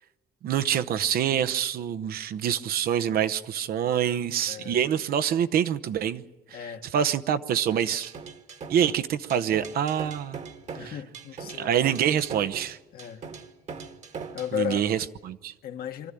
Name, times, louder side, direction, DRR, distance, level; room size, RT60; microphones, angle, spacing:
voice 1, 0.4-6.2 6.9-8.1 8.7-10.4 10.8-10.9 11.6-12.8 14.5-15.5, right 9 dB, 65° right, 0.9 m, -26 dB
voice 2, 4.5-4.8 6.5-6.9 10.7-11.7 12.9-13.2 14.3-14.9 15.6-16.1, left 10 dB, 65° left, 1.6 m, -34 dB
sound 1, 7.7-14.6, right 5 dB, 45° right, 1.6 m, -41 dB
24.5 x 13.5 x 10.0 m
cardioid pair, 110°, 17 cm